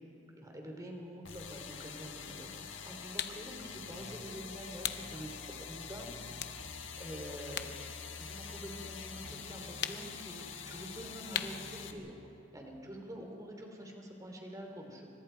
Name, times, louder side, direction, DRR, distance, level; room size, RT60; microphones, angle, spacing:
voice 1, 0.3-5.3 5.7-6.6 7.0-7.7 8.1-12.1 12.5-15.1, equal, 15° right, 2 dB, 3.1 m, -46 dB
sound 1, 1.2-11.9, left 6 dB, 75° left, 1.6 m, -45 dB
sound 2, 3.2-3.4 4.8-5.1 5.6-5.7 6.3-7.8 8.1-9.2 9.8-10.2 11.3-11.7, left 10 dB, 55° left, 0.8 m, -38 dB
28.5 x 25.0 x 4.6 m, 2.7 s
head